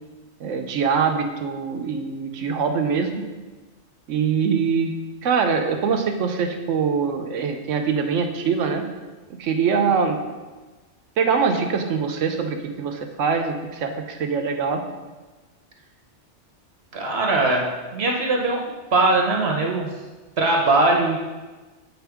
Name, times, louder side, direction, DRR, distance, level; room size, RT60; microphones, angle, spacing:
voice 1, 0.4-3.2 4.1-4.9 5.2-8.8 9.4-10.2 11.2-14.8, right 6 dB, 85° right, 5 dB, 1.0 m, -23 dB
voice 2, 16.9-17.7 17.9-18.6 18.9-19.9 20.4-21.2, right 2 dB, 60° right, 0 dB, 1.0 m, -20 dB
7.9 x 4.3 x 3.5 m, 1.3 s
omnidirectional pair, 1.3 m